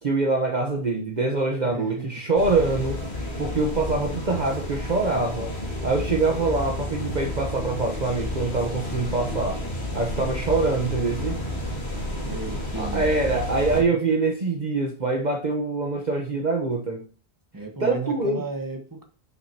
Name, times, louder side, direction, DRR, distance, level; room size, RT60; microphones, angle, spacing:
voice 1, 0.0-3.0 3.4-5.6 5.8-9.6 9.9-11.4 12.8-17.1 17.8-18.4, right 3 dB, 45° right, 1 dB, 1.2 m, -24 dB
voice 2, 1.6-2.2 12.2-13.0 17.5-19.1, right 3 dB, 20° right, 4 dB, 1.4 m, -34 dB
sound 1, 2.3-13.8, left 1 dB, 70° left, 2.8 m, -31 dB
10.5 x 6.3 x 2.9 m, 0.37 s
omnidirectional pair, 1.1 m